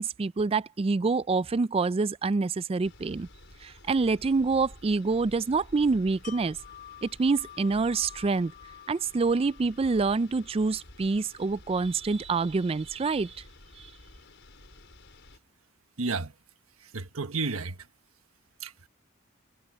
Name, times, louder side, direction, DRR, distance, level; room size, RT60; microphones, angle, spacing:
voice 1, 0.0-3.3 3.6-6.6 7.0-8.5 8.9-13.4 13.8-13.9, right 4 dB, 30° right, 0.3 m, -26 dB
sound 1, 2.8-15.4, left 2 dB, 60° left, 5.7 m, -52 dB
Wind chime, 6.2-12.0 12.4-12.6, left 10 dB, 40° left, 5.6 m, -51 dB
voice 2, 16.0-16.3 16.8-17.9 18.6-18.9, right 4 dB, 90° right, 1.3 m, -32 dB
head